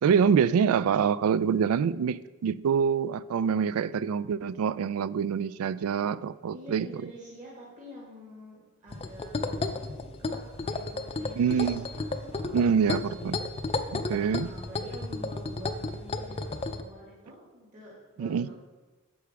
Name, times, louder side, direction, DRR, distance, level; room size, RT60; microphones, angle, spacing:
voice 1, 0.0-6.9 11.4-11.8 12.5-13.4 13.9-14.5 18.2-18.5, right 7 dB, 85° right, 18 dB, 0.3 m, -25 dB
voice 2, 6.5-18.5, equal, 35° right, -7 dB, 2.0 m, -48 dB
sound 1, 8.9-16.8, left 3 dB, 25° left, 0.5 m, -33 dB
9.5 x 7.1 x 3.4 m, 1.3 s
head